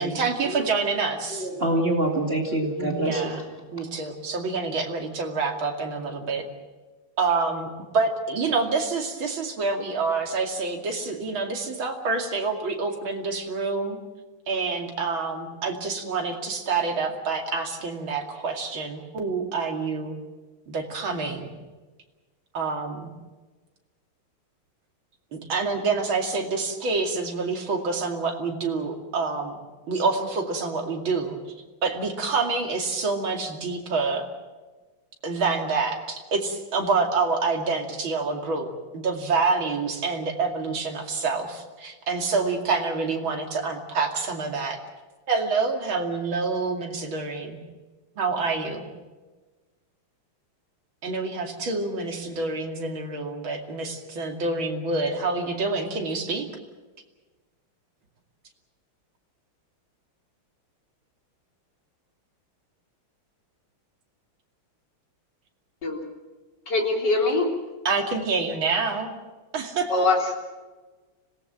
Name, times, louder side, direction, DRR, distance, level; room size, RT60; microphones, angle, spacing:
voice 1, 0.0-1.5 2.8-3.4 3.7-6.4 7.2-7.7 7.9-14.0 14.5-20.2 20.7-21.5 22.5-23.1 25.3-29.6 29.9-31.4 31.8-34.3 35.2-38.7 38.9-44.8 45.3-47.6 48.2-48.8 51.0-56.5 67.8-69.1 69.5-70.1, right 4 dB, 65° right, 3 dB, 3.3 m, -27 dB
voice 2, 1.3-3.9, right 1 dB, 25° right, 1 dB, 2.6 m, -26 dB
voice 3, 66.7-67.5 69.9-70.3, left 3 dB, 50° left, 0 dB, 4.3 m, -22 dB
25.5 x 18.5 x 7.5 m, 1.3 s
omnidirectional pair, 2.4 m